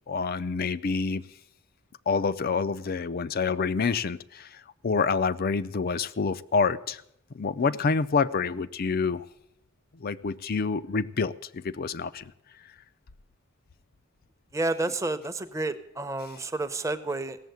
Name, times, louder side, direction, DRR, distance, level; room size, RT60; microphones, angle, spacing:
voice 1, 0.1-1.2 2.1-4.5 4.8-7.0 7.3-9.3 10.0-12.2, left 5 dB, 45° left, 13 dB, 0.5 m, -27 dB
voice 2, 14.5-17.4, right 2 dB, 15° right, 9 dB, 0.7 m, -30 dB
17.0 x 7.3 x 9.4 m, 0.77 s
head